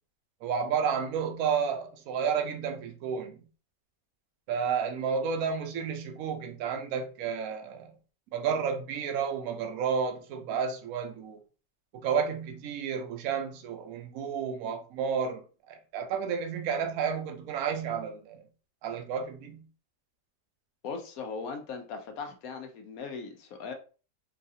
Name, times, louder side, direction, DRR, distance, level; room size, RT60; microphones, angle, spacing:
voice 1, 0.4-3.4 4.5-7.9 8.3-11.4 11.9-18.4 18.8-19.6, right 6 dB, 65° right, 1.0 m, -31 dB
voice 2, 20.8-23.7, left 5 dB, 65° left, 1.0 m, -39 dB
4.0 x 2.3 x 2.7 m
omnidirectional pair, 1.8 m